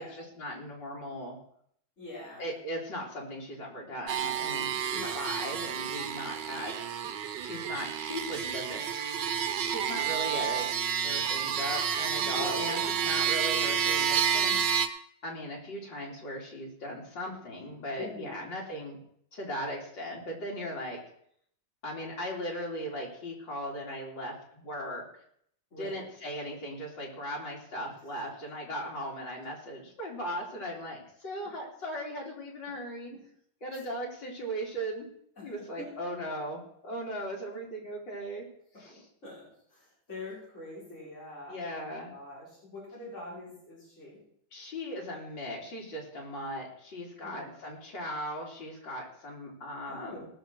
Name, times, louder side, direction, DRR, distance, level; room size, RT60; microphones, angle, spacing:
voice 1, 0.0-1.4 2.4-6.8 7.4-8.9 9.6-14.8 15.2-19.0 19.3-21.0 21.8-25.1 25.8-33.1 33.6-35.1 35.4-38.5 38.8-39.0 41.5-42.1 44.5-50.3, equal, 75° left, -2 dB, 3.8 m, -38 dB
voice 2, 2.0-2.5 4.9-5.2 12.2-13.1 18.0-18.4 25.7-26.0 33.1-33.2 35.4-35.5 35.8-35.9 39.2-44.2 47.2-47.5 49.9-50.3, left 2 dB, 35° left, -8 dB, 5.6 m, -44 dB
sound 1, 4.1-14.9, right 8 dB, 70° right, 1.5 m, -30 dB
18.0 x 6.6 x 6.1 m, 0.68 s
omnidirectional pair, 2.0 m